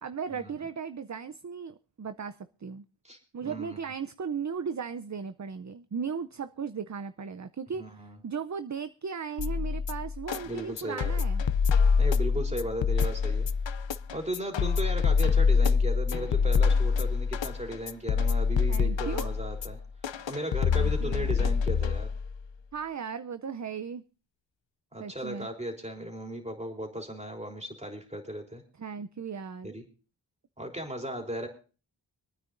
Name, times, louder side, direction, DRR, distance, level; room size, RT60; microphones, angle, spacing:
voice 1, 0.0-2.8 3.3-11.4 18.7-19.3 20.7-21.4 22.7-24.0 25.0-25.5 28.8-29.8, right 6 dB, 40° right, 11 dB, 0.5 m, -36 dB
voice 2, 3.0-3.8 7.8-8.2 10.4-11.1 12.0-13.5 14.1-19.8 20.3-22.1 24.9-28.6 29.6-29.8 30.6-31.5, right 1 dB, 15° right, 2 dB, 3.5 m, -36 dB
sound 1, 9.4-22.4, left 5 dB, 75° left, 0.6 m, -26 dB
26.5 x 9.4 x 2.6 m, 0.36 s
wide cardioid pair, 60°, 45 cm